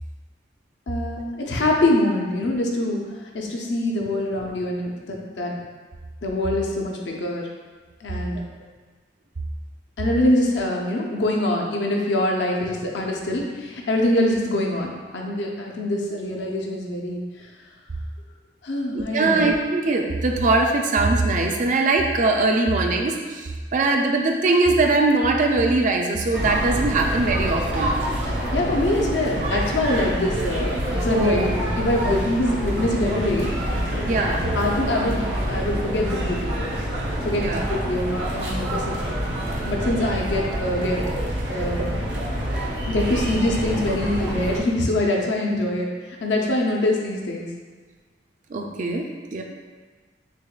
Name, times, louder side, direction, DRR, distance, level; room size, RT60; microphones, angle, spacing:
voice 1, 0.9-3.0 3.3-5.7 6.2-7.4 8.0-8.4 10.0-17.2 18.6-19.4 28.5-33.5 34.5-35.2 35.5-36.6 37.2-39.0 39.7-41.0 41.5-41.9 42.8-47.5, left 1 dB, 85° left, -1 dB, 0.6 m, -24 dB
voice 2, 18.9-27.9 31.1-31.5 32.0-32.2 34.0-34.5 37.3-37.6 48.5-49.4, right 3 dB, 45° right, 2 dB, 0.4 m, -21 dB
sound 1, 26.3-44.6, equal, 90° right, 0.7 m, -27 dB
6.1 x 2.2 x 2.3 m, 1.4 s
head